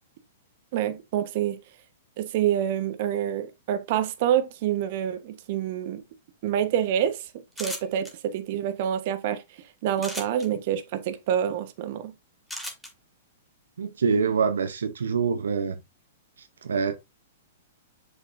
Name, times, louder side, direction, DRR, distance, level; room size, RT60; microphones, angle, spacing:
voice 1, 0.7-1.6 2.2-6.0 6.4-7.3 7.6-12.1, right 10 dB, 55° right, 1.2 m, -27 dB
sound 1, 7.5-8.1 10.0-10.5 12.5-12.9, equal, ahead, 2.2 m, -35 dB
voice 2, 13.8-15.8 16.6-17.0, right 5 dB, 85° right, 0.8 m, -25 dB
6.9 x 5.4 x 2.6 m
hypercardioid pair, 130°, 0 cm